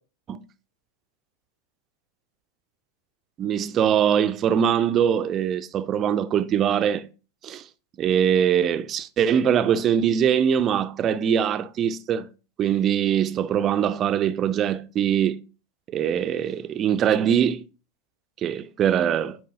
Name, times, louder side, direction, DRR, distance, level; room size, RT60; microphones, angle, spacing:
voice 1, 3.4-7.0 7.4-7.6 8.0-12.3 12.6-15.4 15.9-17.6 18.4-19.4, right 9 dB, 30° right, 0.5 m, -22 dB
9.1 x 4.6 x 2.8 m
figure-of-eight pair, 90°, 0 cm